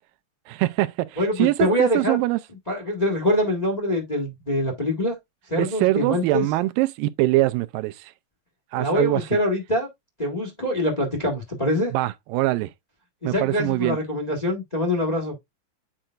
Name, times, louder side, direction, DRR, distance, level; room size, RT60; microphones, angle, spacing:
voice 1, 0.5-2.4 5.6-8.1 8.7-9.2 11.9-12.7 13.2-14.0, right 18 dB, 85° right, 2.3 m, -23 dB
voice 2, 1.2-2.2 2.7-5.2 5.5-6.4 8.8-9.9 10.2-11.9 13.2-15.4, left 1 dB, 75° left, 0.3 m, -24 dB
8.8 x 4.5 x 2.4 m
omnidirectional pair, 4.0 m